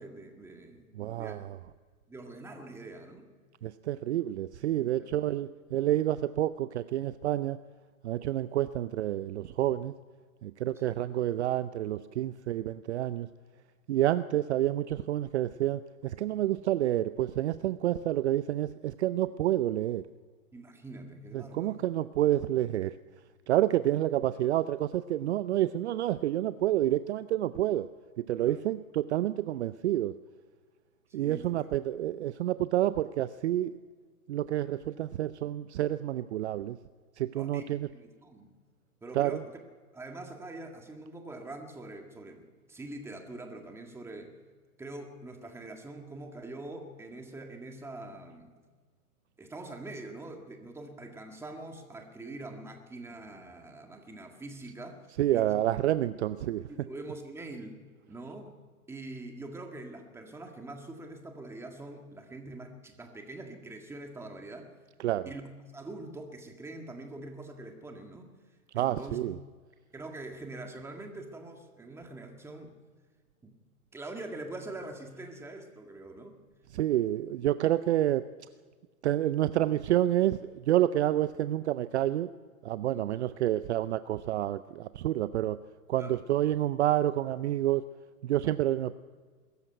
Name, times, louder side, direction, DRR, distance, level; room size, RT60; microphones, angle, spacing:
voice 1, 0.0-1.5 2.1-3.3 5.0-5.1 10.8-11.0 20.5-21.8 28.4-28.6 31.1-31.7 37.3-38.6 39.0-39.6 39.9-44.3 44.8-48.5 49.4-55.1 55.3-55.5 56.7-57.8 58.1-58.6 58.9-64.7 65.3-65.4 65.7-68.3 68.7-69.2 69.9-72.7 73.4-73.5 73.9-76.4 82.8-83.1 86.0-86.2, right 2 dB, 5° right, 3 dB, 1.8 m, -44 dB
voice 2, 0.9-1.6 3.6-7.6 8.0-9.9 10.4-13.3 13.9-20.0 21.3-22.9 23.5-27.9 28.3-30.1 31.1-33.7 34.3-36.8 37.2-37.9 39.1-39.4 55.2-56.6 65.0-65.3 68.7-69.4 76.7-78.3 79.0-82.3 82.6-85.6 85.9-87.9 88.2-88.9, right 13 dB, 50° right, 14 dB, 0.6 m, -29 dB
21.5 x 14.0 x 9.2 m, 1.5 s
hypercardioid pair, 140°, 45 cm